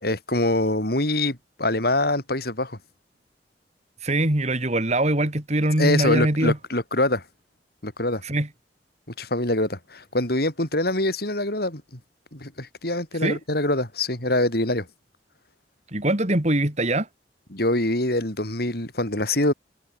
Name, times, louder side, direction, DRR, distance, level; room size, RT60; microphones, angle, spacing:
voice 1, 0.0-2.8 5.8-7.2 7.8-8.2 9.2-11.8 12.3-14.9 17.5-19.5, left 1 dB, 60° left, 5.8 m, -24 dB
voice 2, 4.0-6.6 8.2-8.5 13.2-13.4 15.9-17.1, right 1 dB, 40° right, 3.3 m, -22 dB
head